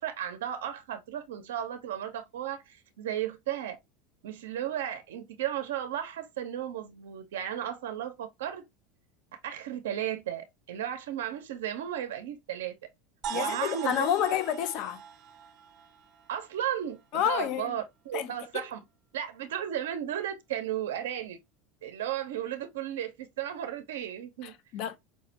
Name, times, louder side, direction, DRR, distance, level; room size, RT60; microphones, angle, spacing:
voice 1, 0.0-3.8 4.2-8.6 9.4-12.7 13.3-14.4 16.3-18.8 19.1-21.4 21.8-24.5, right 10 dB, 85° right, 0.6 m, -34 dB
sound 1, 13.2-17.0, right 7 dB, 50° right, 0.7 m, -40 dB
voice 2, 13.3-15.0 17.1-17.8 18.1-18.6 24.4-25.0, left 10 dB, 55° left, 0.5 m, -30 dB
4.7 x 2.1 x 2.7 m
supercardioid pair, 100°, 0 cm